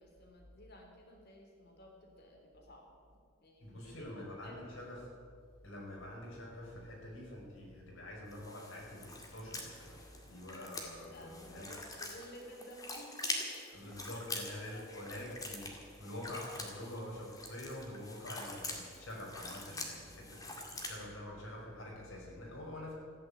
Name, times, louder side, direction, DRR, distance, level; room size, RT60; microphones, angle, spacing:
voice 1, 0.0-2.9 3.4-4.6 11.1-14.2 14.6-15.2, equal, 50° left, 1 dB, 3.4 m, -54 dB
voice 2, 3.6-5.1 5.6-11.7 13.7-22.9, left 1 dB, 75° left, -2 dB, 5.0 m, -46 dB
sound 1, 8.3-21.0, left 2 dB, 15° left, 2.1 m, -45 dB
15.0 x 10.0 x 8.6 m, 2.1 s
head